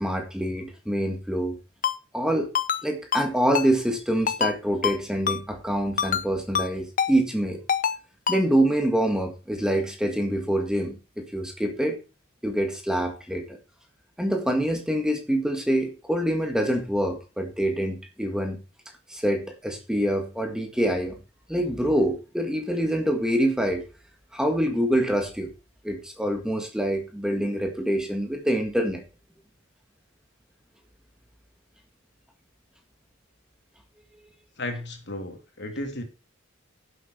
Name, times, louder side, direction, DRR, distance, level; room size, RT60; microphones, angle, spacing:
voice 1, 0.0-1.6 2.1-2.5 2.8-7.6 8.3-12.0 12.4-13.6 14.2-18.6 19.1-21.2 21.5-23.8 24.3-25.5 25.8-29.0, right 1 dB, 5° right, 4 dB, 1.8 m, -25 dB
Ringtone, 1.8-2.0 2.5-2.8 3.1-3.3 3.5-3.7 4.3-4.5 4.8-5.0 5.3-5.4 6.0-6.2 6.5-6.7 7.0-7.1 7.7-8.0 8.3-8.4, left 7 dB, 40° left, 0.7 m, -25 dB
voice 2, 34.6-36.0, left 1 dB, 55° left, 5 dB, 2.9 m, -34 dB
11.0 x 7.9 x 4.6 m, 0.31 s
head